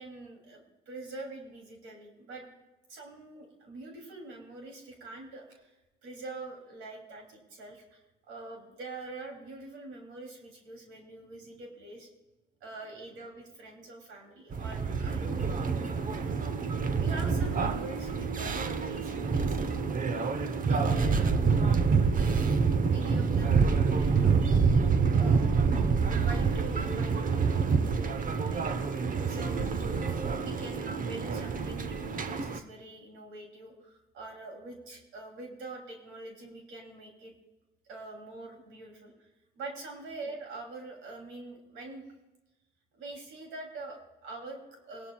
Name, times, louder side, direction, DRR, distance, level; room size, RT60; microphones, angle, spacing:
voice 1, 0.0-2.5 2.9-5.7 6.0-12.1 12.6-16.6 17.0-19.7 20.7-21.4 22.1-24.3 25.1-25.7 26.2-37.4 37.8-39.3 39.5-42.1 42.9-45.1, right 2 dB, 90° right, 1 dB, 3.0 m, -45 dB
sound 1, 14.5-32.6, right 5 dB, 45° right, 0.9 m, -27 dB
18.5 x 12.0 x 2.3 m, 1.0 s
cardioid pair, 90°, 20 cm